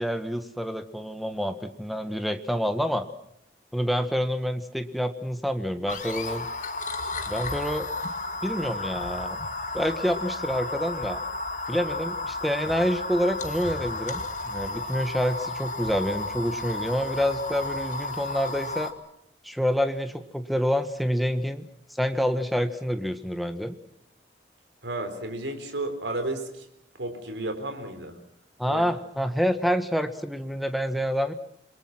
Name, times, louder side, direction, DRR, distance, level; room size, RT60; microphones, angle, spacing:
voice 1, 0.0-3.1 3.7-6.5 7.3-7.9 8.4-9.4 9.7-11.2 11.7-18.9 19.4-21.6 22.0-23.7 28.6-31.3, equal, ahead, 9 dB, 1.4 m, -27 dB
sound 1, 5.9-18.9, left 2 dB, 45° left, 1.9 m, -33 dB
voice 2, 24.8-26.7 27.0-28.2 28.7-28.8, right 2 dB, 85° right, 7 dB, 4.1 m, -32 dB
28.0 x 22.0 x 6.1 m, 0.77 s
head